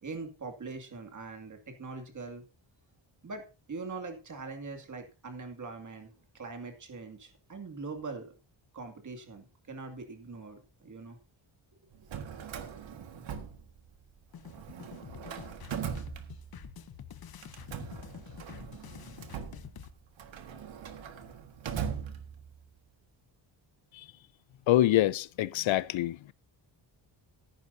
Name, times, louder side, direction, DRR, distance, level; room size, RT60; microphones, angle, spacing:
voice 1, 0.0-2.4 3.2-8.3 8.7-11.2, right 3 dB, 40° right, 2.5 m, -42 dB
Drawer open or close, 11.9-14.1 14.4-16.8 17.4-22.7, right 7 dB, 70° right, 1.8 m, -41 dB
sound 1, 14.3-19.9, left 9 dB, 50° left, 0.9 m, -48 dB
voice 2, 24.7-26.3, left 14 dB, 75° left, 0.6 m, -26 dB
14.5 x 11.0 x 2.7 m
wide cardioid pair, 165°, 47 cm